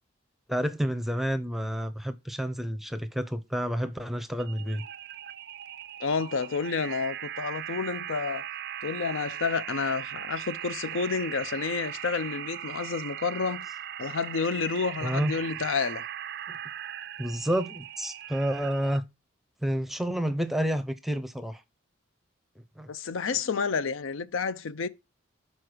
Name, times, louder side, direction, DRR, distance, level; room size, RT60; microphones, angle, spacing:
voice 1, 0.5-4.8 15.0-15.3 16.5-16.6 17.2-19.0 19.6-21.6 22.8-22.9, equal, ahead, 0.6 m, -29 dB
sound 1, 4.4-19.0, right 11 dB, 50° right, 0.4 m, -39 dB
voice 2, 6.0-8.5 8.8-13.7 14.0-16.1 22.9-24.9, left 5 dB, 80° left, 0.5 m, -30 dB
6.3 x 4.4 x 4.9 m
head